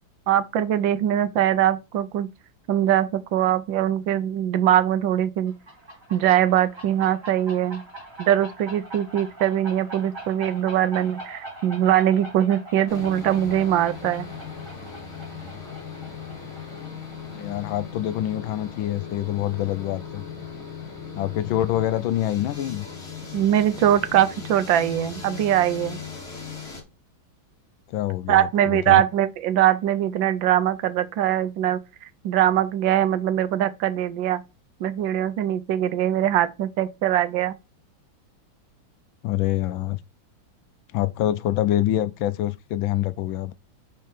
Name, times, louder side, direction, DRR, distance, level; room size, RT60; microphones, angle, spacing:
voice 1, 0.3-2.3 2.7-5.5 6.1-7.8 8.2-14.3 23.3-26.0 28.3-31.8 32.2-34.4 34.8-37.6, right 11 dB, 75° right, 1.3 m, -22 dB
sound 1, 5.5-18.9, right 1 dB, 20° right, 3.4 m, -42 dB
sound 2, 12.9-26.8, left 6 dB, 30° left, 2.4 m, -38 dB
voice 2, 17.3-20.2 21.2-22.9 27.9-29.0 39.2-40.0 40.9-43.5, left 13 dB, 75° left, 1.3 m, -26 dB
5.7 x 4.6 x 4.6 m
omnidirectional pair, 2.3 m